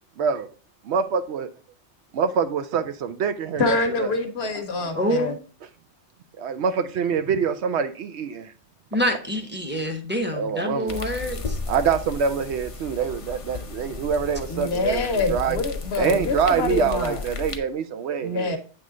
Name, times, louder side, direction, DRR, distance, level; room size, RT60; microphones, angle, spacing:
voice 1, 0.9-1.5 2.1-4.1 6.4-8.5 10.4-11.0 11.7-15.6 16.0-18.6, right 6 dB, 70° right, 0.8 m, -25 dB
voice 2, 3.6-5.3 14.5-17.2 18.2-18.6, left 3 dB, 60° left, 1.1 m, -26 dB
voice 3, 4.9-5.4 8.9-11.6, equal, 10° right, 0.8 m, -26 dB
sound 1, 10.9-17.6, left 4 dB, 40° left, 0.5 m, -34 dB
8.3 x 3.1 x 3.7 m
omnidirectional pair, 1.2 m